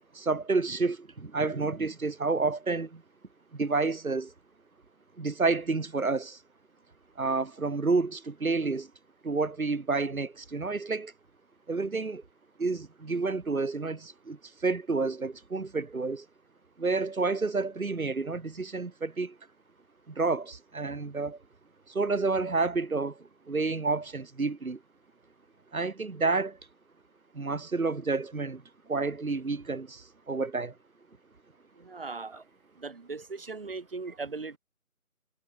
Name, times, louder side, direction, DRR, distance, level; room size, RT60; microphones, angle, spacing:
voice 1, 0.1-3.0 3.5-4.3 5.2-6.4 7.2-8.9 9.2-11.1 11.7-12.2 12.6-16.3 16.8-19.4 20.1-21.4 21.9-24.8 25.7-26.6 27.3-30.7, right 3 dB, 70° right, 2.9 m, -30 dB
voice 2, 31.8-32.4 32.8-34.6, right 4 dB, 40° right, 3.4 m, -38 dB
figure-of-eight pair, 175°, 44 cm